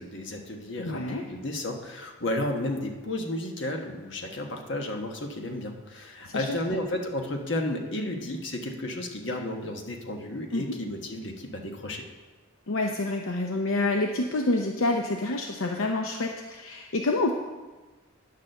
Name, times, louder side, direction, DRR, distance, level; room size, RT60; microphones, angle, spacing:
voice 1, 0.0-12.0, left 1 dB, 60° left, 3 dB, 1.3 m, -33 dB
voice 2, 0.8-1.2 6.3-6.6 10.5-10.7 12.7-17.3, left 2 dB, 80° left, 2 dB, 0.7 m, -28 dB
9.5 x 6.7 x 6.6 m, 1.3 s
head